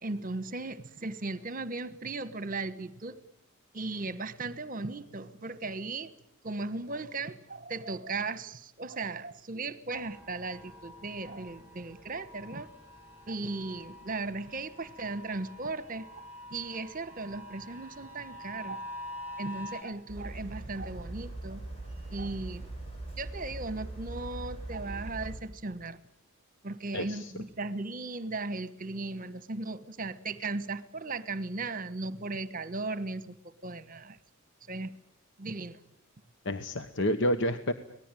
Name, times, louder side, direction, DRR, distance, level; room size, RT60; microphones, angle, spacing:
voice 1, 0.0-3.2 3.7-6.1 6.4-12.7 13.3-16.2 16.5-18.8 19.4-21.6 22.1-22.7 23.2-26.0 26.6-34.2 34.7-34.9 35.4-35.8, right 3 dB, 40° right, 15 dB, 1.2 m, -37 dB
sound 1, 9.9-19.8, left 1 dB, 10° right, 6.4 m, -46 dB
sound 2, 20.1-25.4, right 2 dB, 30° left, 7.9 m, -41 dB
voice 2, 26.9-27.3 36.4-37.7, equal, 60° left, 10 dB, 1.2 m, -29 dB
25.0 x 19.0 x 9.1 m, 0.78 s
head